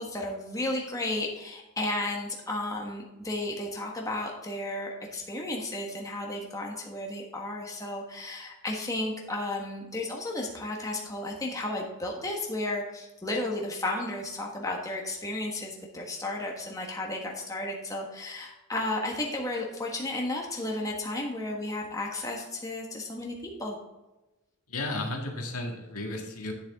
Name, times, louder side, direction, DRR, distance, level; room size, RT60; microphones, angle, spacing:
voice 1, 0.0-23.8, left 2 dB, 15° left, -1 dB, 1.4 m, -33 dB
voice 2, 24.7-26.5, left 2 dB, 80° left, 1 dB, 1.8 m, -33 dB
9.7 x 7.0 x 3.6 m, 1.0 s
head